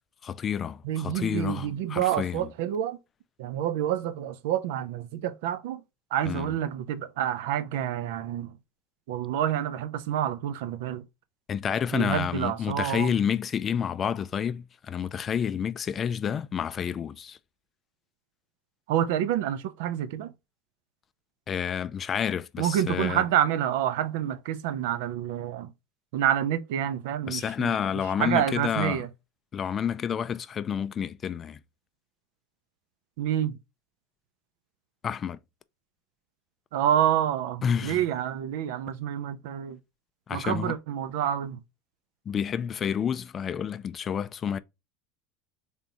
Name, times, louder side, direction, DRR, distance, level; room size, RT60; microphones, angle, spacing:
voice 1, 0.2-2.5 6.3-6.5 11.5-17.4 21.5-23.2 27.3-29.0 29.5-31.6 35.0-35.4 37.6-38.0 40.3-40.7 42.3-44.6, left 8 dB, 30° left, 0.3 m, -29 dB
voice 2, 0.8-3.0 3.4-5.8 6.1-8.6 9.1-11.1 11.9-13.1 18.9-20.3 22.6-25.7 26.1-27.7 28.2-29.1 33.2-33.6 36.7-39.8 40.3-41.6, right 11 dB, 75° right, 0.5 m, -28 dB
3.9 x 3.5 x 2.7 m
supercardioid pair, 125°, 0 cm